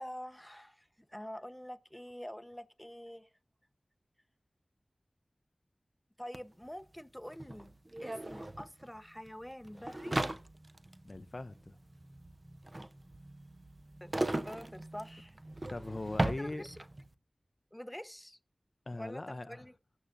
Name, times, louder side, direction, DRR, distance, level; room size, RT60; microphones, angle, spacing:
voice 1, 0.0-3.3 6.2-7.7 8.0-10.2 14.0-14.2 14.5-15.3 16.2-16.8 17.7-18.4 19.0-19.7, equal, 10° left, 0.6 m, -46 dB
sound 1, 6.3-6.4 6.6-17.1, right 1 dB, 40° right, 0.7 m, -38 dB
voice 2, 11.0-11.8 15.7-16.7 18.9-19.7, left 2 dB, 50° left, 0.4 m, -41 dB
17.0 x 6.8 x 2.5 m
cardioid pair, 40°, 0 cm